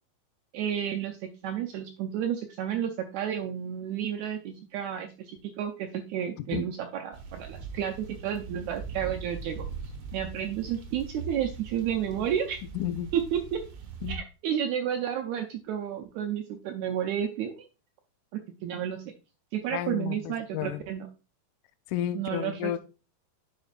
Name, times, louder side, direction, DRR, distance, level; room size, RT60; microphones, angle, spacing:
voice 1, 0.5-9.7 10.1-12.6 13.1-13.6 14.1-17.7 18.3-19.0 19.5-21.1 22.2-22.8, right 9 dB, 85° right, 1.6 m, -31 dB
sound 1, 7.1-14.2, right 5 dB, 65° right, 1.4 m, -41 dB
voice 2, 12.7-13.1 14.0-14.2 19.7-20.8 21.9-22.8, left 11 dB, 80° left, 1.9 m, -32 dB
10.5 x 5.0 x 2.4 m
omnidirectional pair, 3.9 m